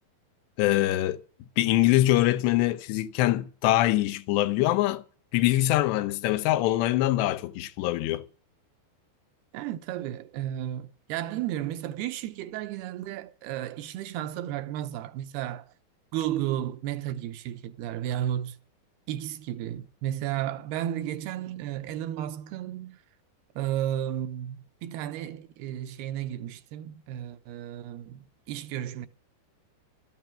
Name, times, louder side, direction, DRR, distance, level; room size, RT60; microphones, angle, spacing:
voice 1, 0.6-1.2 1.6-5.0 5.3-8.2, left 15 dB, 90° left, 3.0 m, -24 dB
voice 2, 9.5-15.7 16.1-18.6 19.1-23.0 23.6-29.1, right 12 dB, 75° right, 2.7 m, -33 dB
13.5 x 9.0 x 8.9 m
omnidirectional pair, 4.8 m